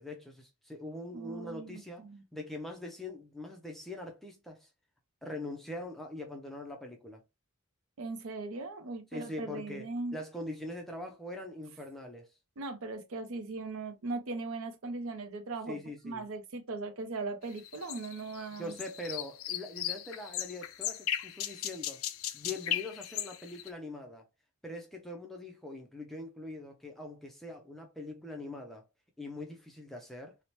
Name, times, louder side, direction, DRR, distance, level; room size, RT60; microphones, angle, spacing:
voice 1, 0.0-2.0 2.3-4.7 5.2-7.2 9.1-12.3 15.7-16.2 18.6-22.0 22.3-24.2 24.6-28.8 29.2-30.4, left 1 dB, ahead, 0.4 m, -42 dB
voice 2, 1.1-2.2 8.0-10.1 12.6-15.8 16.0-18.7, right 3 dB, 70° right, 0.5 m, -39 dB
sound 1, 17.6-23.7, left 11 dB, 70° left, 0.4 m, -37 dB
2.8 x 2.0 x 3.0 m
head